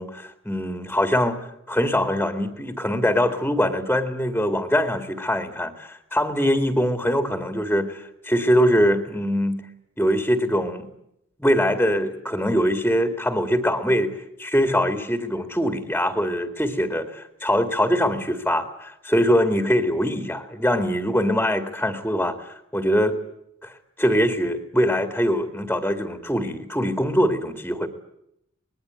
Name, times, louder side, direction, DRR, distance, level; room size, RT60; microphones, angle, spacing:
voice 1, 0.0-1.4 1.7-9.6 10.0-10.9 11.4-23.2 23.6-27.9, equal, 5° left, 7 dB, 2.1 m, -23 dB
25.5 x 21.0 x 9.2 m, 0.78 s
head